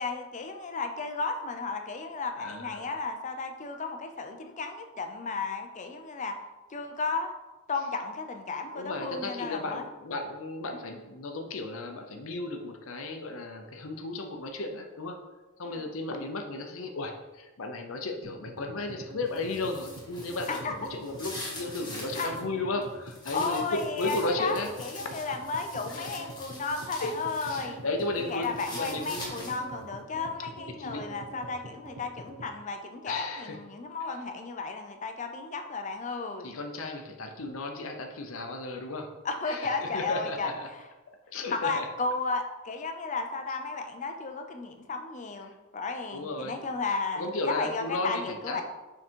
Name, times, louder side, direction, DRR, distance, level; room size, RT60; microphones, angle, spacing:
voice 1, 0.0-6.3 6.7-7.3 7.7-9.8 15.6-15.8 20.5-20.7 22.2-22.4 23.3-27.8 28.2-36.5 39.2-40.5 41.5-48.6, left 4 dB, 35° left, 5 dB, 0.6 m, -34 dB
voice 2, 2.4-2.8 8.7-15.2 15.6-24.7 25.9-26.2 27.0-27.1 27.4-29.5 30.8-31.1 33.1-33.6 36.4-39.1 39.4-40.7 41.3-41.9 46.1-46.6 47.1-48.6, left 2 dB, 75° left, 4 dB, 0.7 m, -34 dB
sound 1, 18.2-32.5, right 2 dB, 75° right, 1.0 m, -45 dB
sound 2, 19.3-22.4 22.8-27.7 28.0-29.8, left 1 dB, 20° left, 2.1 m, -44 dB
6.2 x 3.8 x 4.5 m, 1.1 s
head